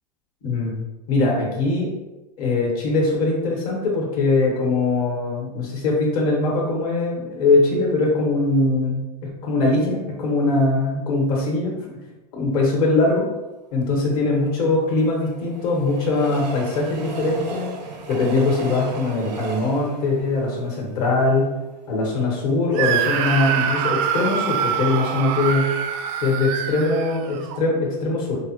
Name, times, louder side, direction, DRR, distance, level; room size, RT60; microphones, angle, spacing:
voice 1, 0.4-0.8 1.1-1.9 2.4-11.7 12.3-13.3 13.7-17.7 18.1-21.5 21.9-25.7 26.2-28.4, left 2 dB, 65° left, -2 dB, 1.4 m, -21 dB
Train, 14.4-21.7 22.2-22.3 22.5-22.6, right 4 dB, 90° right, 0.8 m, -36 dB
Screaming, 22.7-27.6, right 8 dB, 50° right, 0.4 m, -25 dB
4.9 x 2.1 x 2.9 m, 1.1 s
hypercardioid pair, 115°, 21 cm